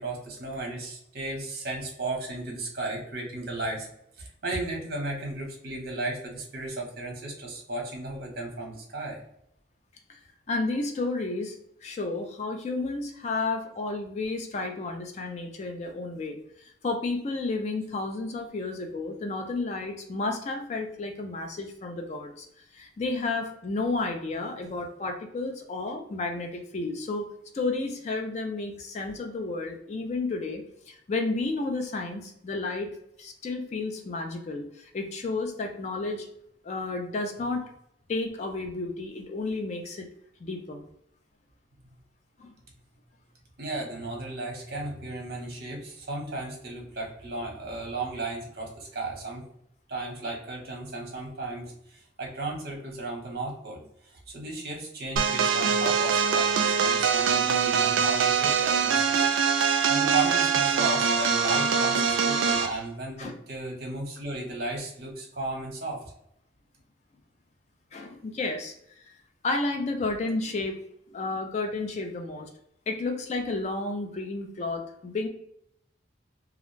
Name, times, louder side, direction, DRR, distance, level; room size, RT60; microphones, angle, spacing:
voice 1, 0.0-3.9 4.2-9.2 43.6-49.4 49.9-59.2 59.9-66.1, right 2 dB, 55° right, 0 dB, 0.8 m, -34 dB
voice 2, 10.5-11.6 11.8-22.5 22.7-27.3 27.5-32.9 33.2-36.3 36.6-37.6 38.1-40.1 40.4-40.8 42.4-42.5 63.2-63.4 67.9-68.7 69.1-69.2 69.4-70.8 71.1-72.5 72.9-75.3, left 3 dB, 35° left, 4 dB, 0.3 m, -32 dB
sound 1, 55.2-62.8, right 6 dB, 80° right, 0.3 m, -23 dB
2.4 x 2.1 x 3.1 m, 0.73 s
head